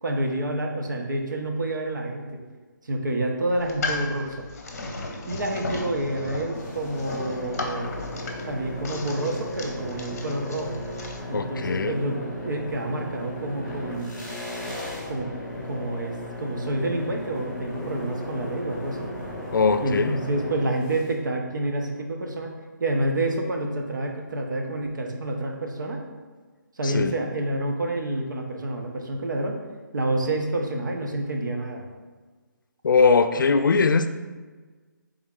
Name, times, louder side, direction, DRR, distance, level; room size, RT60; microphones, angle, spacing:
voice 1, 0.0-2.4 2.8-4.5 5.3-7.9 8.5-10.8 11.3-14.2 15.1-19.2 19.8-22.5 22.8-26.0 26.8-29.6 29.9-31.9, right 1 dB, 65° right, 2 dB, 0.8 m, -28 dB
sound 1, 3.6-11.2, left 3 dB, 45° left, 0.7 m, -35 dB
sound 2, 6.5-21.1, left 1 dB, 5° right, 0.6 m, -36 dB
voice 2, 11.3-12.0 19.5-20.2 26.8-27.1 32.8-34.1, left 4 dB, 75° left, 9 dB, 0.4 m, -21 dB
4.0 x 3.6 x 3.6 m, 1.4 s
hypercardioid pair, 175°, 11 cm